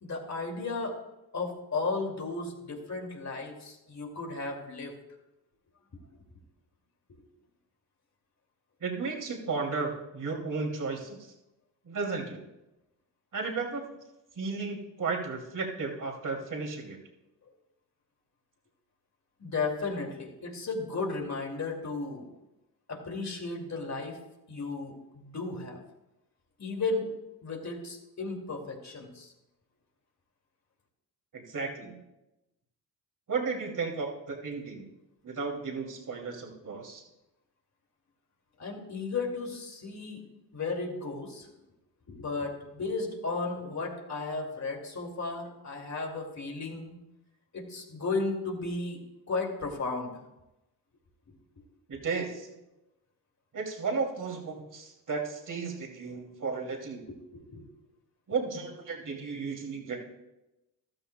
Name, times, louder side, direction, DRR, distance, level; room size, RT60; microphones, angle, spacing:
voice 1, 0.0-1.0 1.3-4.9 7.1-7.2 19.4-22.3 22.9-24.2 24.5-25.8 26.6-27.1 27.4-29.3 38.6-40.2 40.5-41.5 42.1-46.9 47.5-49.0 49.3-50.2 57.1-57.2 57.5-57.6, left 3 dB, 40° left, 2 dB, 2.6 m, -34 dB
voice 2, 8.8-11.2 11.9-12.4 13.3-13.8 14.4-17.0 31.3-32.0 33.3-34.9 35.2-37.0 51.9-52.5 53.5-57.0 58.3-60.0, right 4 dB, 45° right, 1 dB, 2.8 m, -34 dB
14.0 x 12.5 x 2.3 m, 0.96 s
supercardioid pair, 65°, 43 cm